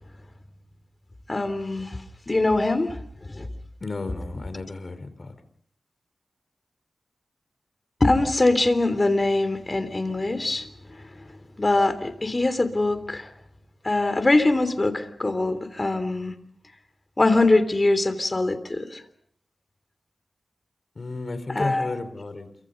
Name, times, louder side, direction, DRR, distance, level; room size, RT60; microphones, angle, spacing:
voice 1, 1.3-2.0 2.3-3.0 3.3-3.5 8.0-10.7 11.6-13.3 13.8-16.3 17.2-19.0 21.5-21.9, left 2 dB, 35° left, 11 dB, 3.3 m, -22 dB
voice 2, 3.8-5.3 21.0-22.5, left 3 dB, 55° left, 10 dB, 4.0 m, -33 dB
28.5 x 24.5 x 5.4 m, 0.67 s
cardioid pair, 55°, 0 cm